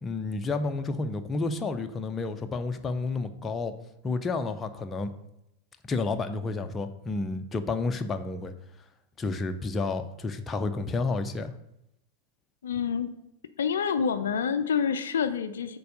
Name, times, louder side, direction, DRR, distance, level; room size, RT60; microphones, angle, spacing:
voice 1, 0.0-3.7 4.0-5.1 5.8-8.5 9.2-11.5, left 3 dB, 20° left, 7 dB, 0.6 m, -30 dB
voice 2, 12.6-13.1 13.6-15.8, left 7 dB, 65° left, 10 dB, 0.4 m, -27 dB
6.8 x 4.6 x 6.3 m, 0.84 s
figure-of-eight pair, 90°, 0 cm